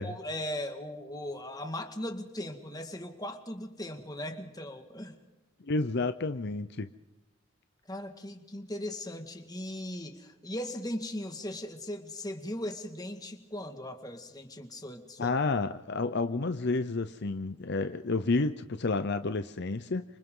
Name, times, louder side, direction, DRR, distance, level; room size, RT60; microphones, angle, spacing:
voice 1, 0.0-5.1 7.9-15.3, left 1 dB, 20° left, 6 dB, 2.0 m, -38 dB
voice 2, 5.6-6.9 15.2-20.0, left 3 dB, 50° left, 10 dB, 0.7 m, -30 dB
29.5 x 26.5 x 3.9 m, 1.0 s
head